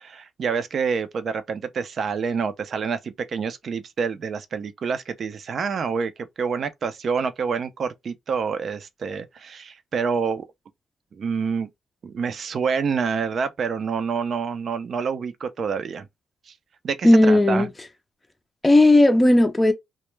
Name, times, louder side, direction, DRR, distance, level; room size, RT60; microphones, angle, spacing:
voice 1, 0.0-6.1 6.4-10.4 11.2-11.7 12.0-16.1 16.8-17.7, right 5 dB, 50° right, 0.4 m, -27 dB
voice 2, 17.0-17.7 18.6-19.7, left 1 dB, 15° left, 0.4 m, -15 dB
2.1 x 2.1 x 3.1 m
cardioid pair, 90°, 0 cm